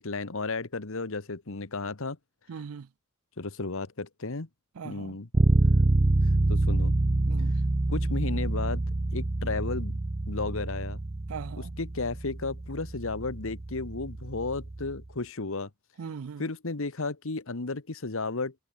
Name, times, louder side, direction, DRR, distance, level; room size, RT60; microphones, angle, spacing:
voice 1, 0.0-2.2 3.4-4.5 4.8-5.3 6.5-6.9 7.9-8.8 9.1-10.0 10.3-11.0 11.8-15.7 16.0-16.1 16.4-18.5, left 3 dB, 70° left, 1.4 m, -33 dB
voice 2, 2.5-2.9 4.8-5.2 7.3-7.6 11.3-11.7 16.0-16.5, right 6 dB, 75° right, 0.5 m, -39 dB
Bass guitar, 5.3-15.1, right 2 dB, 30° right, 0.7 m, -27 dB
head